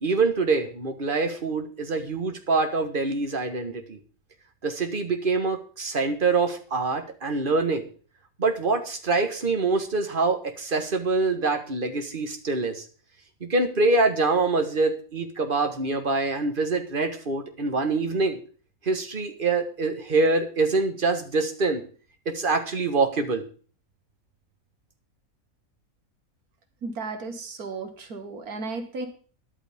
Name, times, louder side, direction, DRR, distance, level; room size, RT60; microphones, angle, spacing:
voice 1, 0.0-4.0 4.6-7.8 8.4-12.8 13.4-18.4 18.8-21.8 22.2-23.4, right 3 dB, 35° right, 6 dB, 1.6 m, -25 dB
voice 2, 26.8-29.1, right 3 dB, 90° right, 6 dB, 2.0 m, -34 dB
13.0 x 11.0 x 3.6 m, 0.40 s
omnidirectional pair, 1.5 m